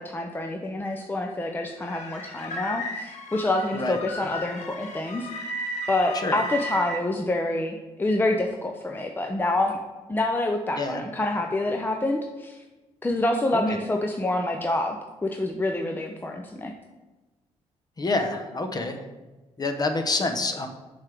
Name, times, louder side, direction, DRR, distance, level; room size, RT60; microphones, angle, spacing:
voice 1, 0.0-5.3 5.9-9.8 10.1-12.6 13.0-15.0 15.2-16.7, left 2 dB, 15° left, 3 dB, 0.6 m, -27 dB
sound 1, 1.8-7.0, equal, 75° left, 0.9 m, -35 dB
voice 2, 18.0-19.0 19.6-20.7, left 3 dB, 35° left, 6 dB, 0.9 m, -27 dB
7.1 x 3.5 x 5.9 m, 1.2 s
cardioid pair, 80°, 12 cm